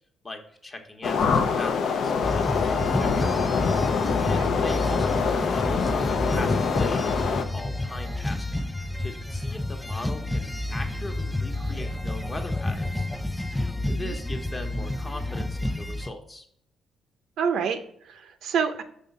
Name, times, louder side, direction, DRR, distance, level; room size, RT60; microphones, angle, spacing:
voice 1, 0.2-3.3 4.2-8.6 9.0-13.1 13.8-16.4, left 2 dB, 25° left, 4 dB, 1.0 m, -39 dB
sound 1, 1.0-7.4, left 5 dB, 65° left, 0.6 m, -25 dB
sound 2, 2.2-16.1, left 1 dB, 5° left, 0.4 m, -29 dB
voice 2, 17.4-18.8, right 6 dB, 75° right, 8 dB, 0.6 m, -28 dB
5.4 x 3.8 x 5.4 m, 0.68 s
cardioid pair, 90°, 0 cm